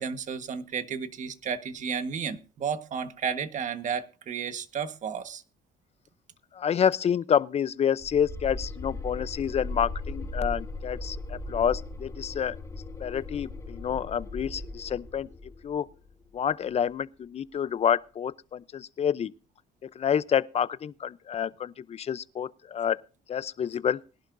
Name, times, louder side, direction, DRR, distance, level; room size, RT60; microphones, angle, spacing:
voice 1, 0.0-5.4, right 6 dB, 45° right, 1.5 m, -32 dB
voice 2, 6.5-12.6 13.0-15.3 15.6-15.9 16.3-19.3 20.0-23.0 23.3-24.0, left 8 dB, 40° left, 0.6 m, -28 dB
sound 1, 8.0-16.9, left 2 dB, 15° left, 4.3 m, -38 dB
21.0 x 11.5 x 2.6 m
cardioid pair, 110°, 17 cm